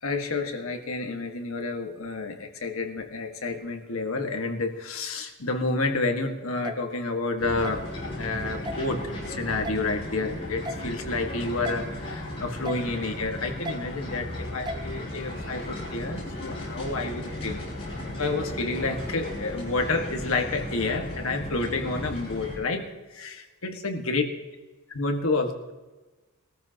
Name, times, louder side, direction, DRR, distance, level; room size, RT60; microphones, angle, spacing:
voice 1, 0.0-7.8 8.1-14.2 14.5-17.6 18.2-24.2 24.9-25.7, left 3 dB, 75° left, 4 dB, 1.7 m, -29 dB
sound 1, 6.6-6.8 7.6-7.8 8.6-8.8 9.6-9.8 10.6-10.8 11.6-11.8 12.6-12.8 13.6-13.8 14.7-14.8, equal, 20° right, 0.7 m, -34 dB
sound 2, 7.4-22.6, left 1 dB, 25° left, 5.7 m, -36 dB
21.0 x 14.0 x 2.9 m, 1.2 s
head